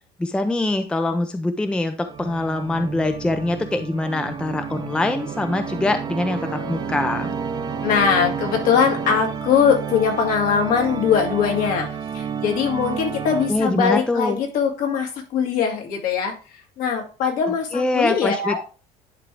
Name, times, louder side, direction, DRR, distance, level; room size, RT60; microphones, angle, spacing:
voice 1, 0.2-7.3 13.5-14.4 17.7-18.6, left 2 dB, 5° left, 8 dB, 0.4 m, -23 dB
Organ, 2.0-13.9, right 6 dB, 30° right, 0.7 m, -30 dB
voice 2, 7.8-11.9 12.1-16.3 16.8-18.6, left 7 dB, 65° left, 2 dB, 2.1 m, -21 dB
10.5 x 3.7 x 3.3 m, 0.36 s
cardioid pair, 160°, 15 cm